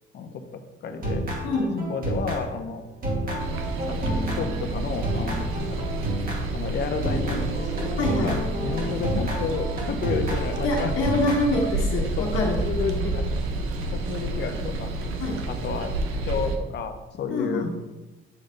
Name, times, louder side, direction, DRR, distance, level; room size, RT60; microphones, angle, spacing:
voice 1, 0.1-1.3 1.9-2.9 3.9-5.9 6.5-7.9 8.2-10.9 12.0-12.3 12.6-13.5 13.9-14.9 15.5-15.9 16.2-17.7, left 5 dB, 55° left, 6 dB, 0.9 m, -31 dB
sound 1, 0.9-2.8 3.0-6.6 7.0-11.6, right 1 dB, 45° right, 2.1 m, -30 dB
voice 2, 1.4-1.9 8.0-8.4 10.6-12.6 12.9-13.0 15.2-15.4 17.3-17.7, left 2 dB, 70° left, -2 dB, 1.4 m, -25 dB
sound 2, 3.4-16.6, right 2 dB, 80° right, 0.9 m, -29 dB
9.4 x 3.3 x 5.2 m, 1.1 s
cardioid pair, 125°, 21 cm